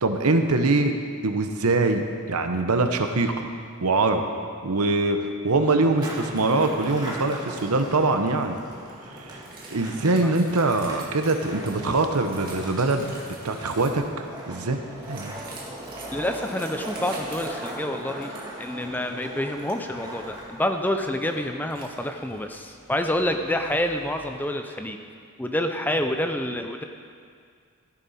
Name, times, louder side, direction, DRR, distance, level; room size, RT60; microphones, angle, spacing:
voice 1, 0.0-0.9 1.2-3.5 3.8-4.2 4.6-8.6 9.1-9.4 9.7-13.1 13.4-14.8 15.1-15.4, right 3 dB, 90° right, 6 dB, 0.9 m, -23 dB
Skateboard, 5.9-24.5, right 1 dB, 20° right, 1.8 m, -40 dB
sound 1, 9.4-14.1 15.0-18.6 18.8-19.0 19.4-19.8 20.3-20.4 21.0-21.4 21.7-22.7, right 3 dB, 40° right, 2.0 m, -46 dB
voice 2, 16.1-25.0 25.4-26.8, left 1 dB, 10° left, 5 dB, 0.5 m, -28 dB
14.0 x 11.0 x 4.3 m, 2.2 s
head